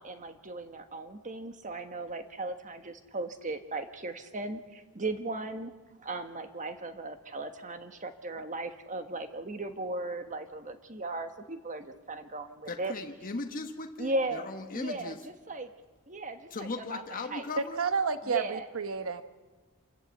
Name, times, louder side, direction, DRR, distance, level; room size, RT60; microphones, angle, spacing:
voice 1, 0.0-5.7 6.0-12.9 14.0-14.5 14.7-15.7 16.1-17.0 17.3-17.5 18.3-18.7, right 2 dB, 35° right, 8 dB, 1.4 m, -37 dB
voice 2, 12.7-15.2 16.5-17.8, left 3 dB, 40° left, 4 dB, 1.2 m, -38 dB
voice 3, 17.8-19.2, right 5 dB, 65° right, 10 dB, 1.1 m, -30 dB
27.0 x 13.5 x 8.3 m, 1.3 s
head